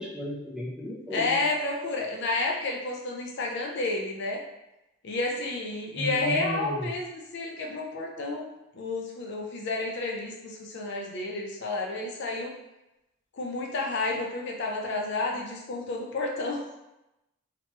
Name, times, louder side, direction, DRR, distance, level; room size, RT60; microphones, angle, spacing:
voice 1, 0.0-1.4 5.9-6.9, equal, 5° right, -5 dB, 0.4 m, -34 dB
voice 2, 1.1-4.4 5.0-8.5 8.7-12.5 13.3-16.7, left 2 dB, 55° left, 0 dB, 0.5 m, -30 dB
2.9 x 2.1 x 2.9 m, 0.91 s
head